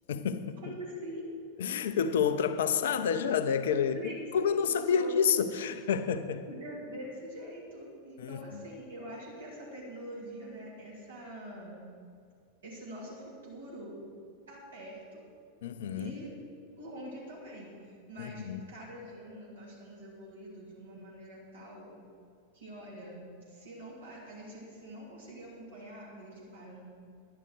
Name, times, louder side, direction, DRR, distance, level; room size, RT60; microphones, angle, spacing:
voice 1, 0.1-0.8 1.6-4.0 4.3-6.4 8.2-8.7 15.6-16.1 18.2-18.6, left 7 dB, 60° left, 10 dB, 0.6 m, -29 dB
voice 2, 0.6-1.2 3.9-5.1 6.5-11.8 12.6-14.0 14.5-15.2 16.0-16.3 16.8-21.9 22.5-26.8, equal, 70° right, -5 dB, 3.2 m, -45 dB
11.0 x 10.5 x 4.8 m, 2.2 s
figure-of-eight pair, 90°, 0 cm